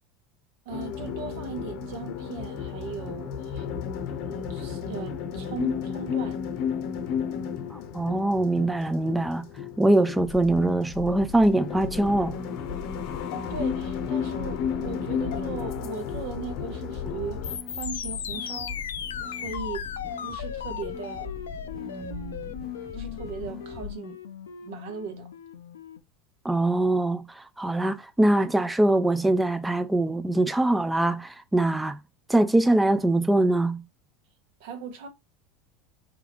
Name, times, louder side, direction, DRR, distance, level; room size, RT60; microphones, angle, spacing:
sound 1, 0.7-17.6, left 7 dB, 60° left, 0.7 m, -33 dB
voice 1, 0.7-3.7 4.2-6.4 13.5-18.8 19.3-19.8 20.2-21.3 21.8-22.6 22.9-24.2 24.6-25.3 34.6-35.1, right 5 dB, 70° right, 0.9 m, -38 dB
sound 2, 6.9-9.2 17.4-26.0, left 8 dB, 90° left, 0.3 m, -38 dB
voice 2, 7.7-9.4 9.8-12.4 26.4-32.0 32.3-33.8, right 1 dB, 10° right, 0.3 m, -23 dB
sound 3, 10.2-23.9, left 5 dB, 30° left, 0.7 m, -40 dB
3.4 x 2.3 x 3.4 m
hypercardioid pair, 95°, 0 cm